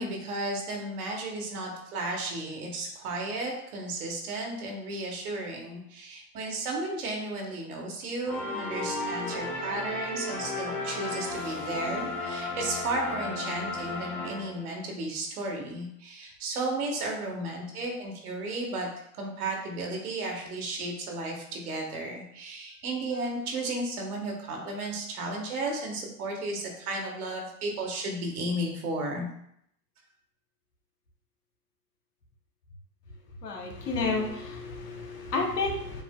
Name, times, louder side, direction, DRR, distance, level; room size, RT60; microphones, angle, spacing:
voice 1, 0.0-18.9 19.2-29.2, right 2 dB, 65° right, 1 dB, 1.4 m, -34 dB
sound 1, 8.3-14.9, left 2 dB, 5° left, 0.4 m, -34 dB
voice 2, 33.4-36.0, left 3 dB, 80° left, 1 dB, 1.2 m, -31 dB
6.9 x 2.5 x 2.2 m, 0.72 s
hypercardioid pair, 120°, 47 cm